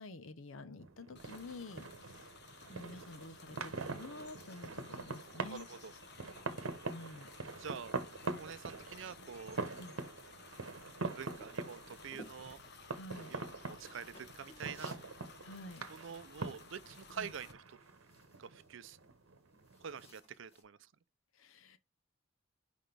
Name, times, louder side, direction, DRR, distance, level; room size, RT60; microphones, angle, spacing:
voice 1, 0.0-2.3 2.7-5.7 6.9-7.3 9.8-10.0 13.0-13.3 15.4-15.8 17.2-17.3 21.3-21.8, left 2 dB, 80° left, 0.8 m, -49 dB
sound 1, 0.8-20.1, right 3 dB, 85° right, 0.9 m, -44 dB
sound 2, 1.2-17.5, left 5 dB, 55° left, 1.1 m, -57 dB
voice 2, 5.5-5.9 7.6-7.9 8.3-9.6 11.0-12.6 13.3-15.0 15.9-17.6 18.4-19.0 19.8-20.9, right 7 dB, 65° right, 0.5 m, -46 dB
sound 3, 11.3-20.6, equal, 30° left, 1.5 m, -60 dB
5.9 x 5.0 x 3.3 m
head